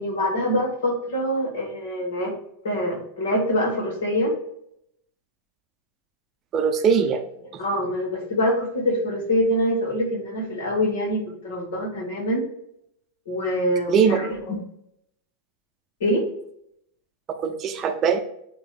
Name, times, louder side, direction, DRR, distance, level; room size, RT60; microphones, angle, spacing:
voice 1, 0.0-2.3 2.6-4.3 7.6-12.4 13.3-14.6 16.0-16.3, equal, 60° left, -1 dB, 2.3 m, -25 dB
voice 2, 6.5-7.2 13.9-14.2 17.3-18.2, right 6 dB, 30° right, 6 dB, 0.7 m, -21 dB
8.6 x 3.1 x 4.3 m, 0.75 s
figure-of-eight pair, 85°, 0 cm